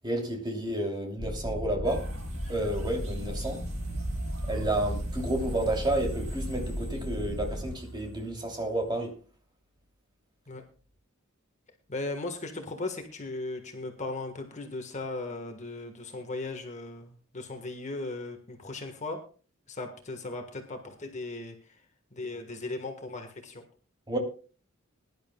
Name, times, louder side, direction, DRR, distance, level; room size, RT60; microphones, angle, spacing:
voice 1, 0.0-2.1 2.5-3.6 4.5-9.1 24.1-24.2, right 1 dB, 20° right, 2.9 m, -31 dB
sound 1, 1.2-7.7, equal, 50° left, 2.7 m, -36 dB
sound 2, 1.8-8.9, right 2 dB, 85° right, 7.0 m, -41 dB
voice 2, 11.9-19.2 19.7-21.7 22.1-23.6, left 2 dB, 35° left, 1.5 m, -37 dB
21.5 x 11.0 x 2.3 m
head